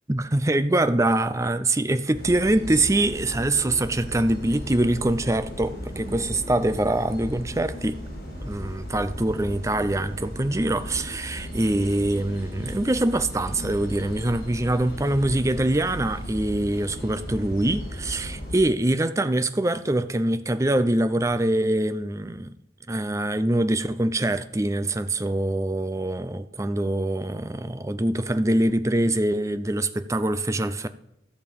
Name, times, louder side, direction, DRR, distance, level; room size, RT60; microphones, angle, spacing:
voice 1, 0.1-8.0 8.4-22.5 22.9-30.9, right 1 dB, 15° right, 0.5 m, -24 dB
sound 1, 2.1-18.6, equal, 70° left, 4.4 m, -36 dB
13.5 x 6.8 x 5.3 m
head